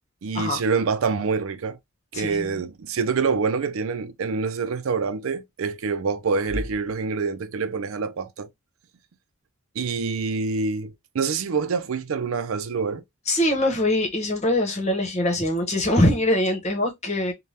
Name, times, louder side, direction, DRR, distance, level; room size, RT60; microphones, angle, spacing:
voice 1, 0.2-1.8 2.1-8.5 9.8-13.0, right 5 dB, 80° right, 0.5 m, -26 dB
voice 2, 2.1-2.5 13.3-17.3, left 1 dB, 35° left, 1.0 m, -23 dB
3.4 x 2.2 x 2.7 m
head